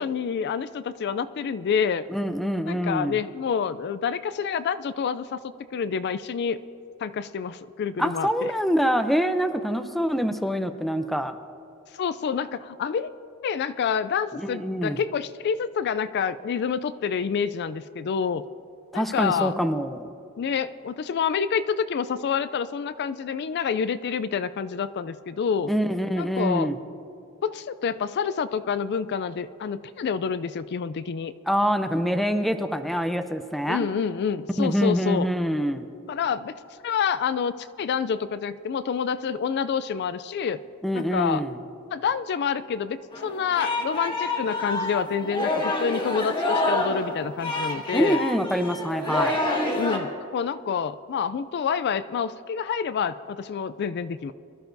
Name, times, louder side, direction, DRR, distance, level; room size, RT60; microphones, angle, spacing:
voice 1, 0.0-2.1 2.7-5.4 5.7-6.6 7.0-8.5 11.9-13.1 13.4-18.4 18.9-19.5 20.4-25.7 26.2-26.7 27.4-31.3 33.7-35.3 36.1-36.5 36.8-40.6 40.9-41.4 41.9-48.2 49.7-54.3, left 6 dB, 50° left, 13 dB, 0.3 m, -28 dB
voice 2, 2.1-3.2 8.0-11.4 14.3-15.0 18.9-20.1 25.7-26.8 31.5-33.9 34.6-35.9 40.8-41.6 47.9-49.4, equal, ahead, 8 dB, 0.5 m, -25 dB
Singing, 43.1-50.0, left 2 dB, 20° left, 1.7 m, -27 dB
23.5 x 13.0 x 2.6 m, 2.6 s
head